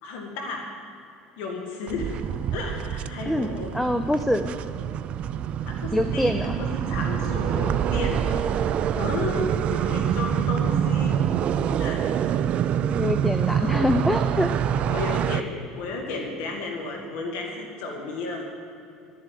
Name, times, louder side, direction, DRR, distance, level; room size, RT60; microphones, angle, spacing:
voice 1, 0.0-0.7 1.4-2.2 2.5-3.8 5.6-11.2 11.6-12.0 13.5-13.9 14.4-14.5 14.9-18.4, left 3 dB, 75° left, 1 dB, 1.9 m, -33 dB
sound 1, 1.9-15.4, right 9 dB, 50° right, 0.5 m, -26 dB
voice 2, 3.3-4.5 5.9-6.6 13.0-14.5, left 1 dB, 5° left, 7 dB, 0.6 m, -24 dB
11.5 x 7.4 x 9.2 m, 2.7 s
supercardioid pair, 85°, 3 cm